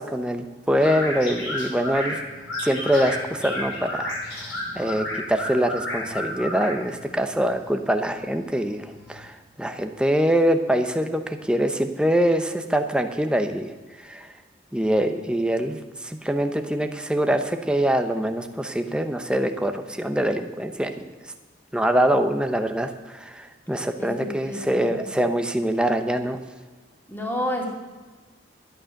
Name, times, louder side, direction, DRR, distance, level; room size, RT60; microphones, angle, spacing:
voice 1, 0.0-2.2 2.6-14.3 14.7-20.9 21.7-26.4, equal, 5° right, 6 dB, 0.8 m, -24 dB
sound 1, 0.8-9.2, left 1 dB, 80° left, 5.6 m, -32 dB
voice 2, 24.0-25.2 27.1-27.7, left 1 dB, 10° left, -1 dB, 2.4 m, -30 dB
12.0 x 11.5 x 6.5 m, 1.3 s
head